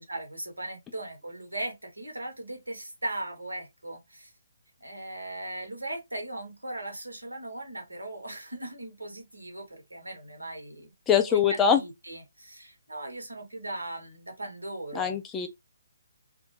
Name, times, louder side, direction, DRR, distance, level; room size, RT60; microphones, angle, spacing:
voice 1, 0.1-4.3 4.8-15.2, right 1 dB, 85° right, 0.9 m, -38 dB
voice 2, 11.1-11.8 14.9-15.5, left 7 dB, 15° left, 0.3 m, -23 dB
2.2 x 2.0 x 3.0 m
figure-of-eight pair, 140°, 0 cm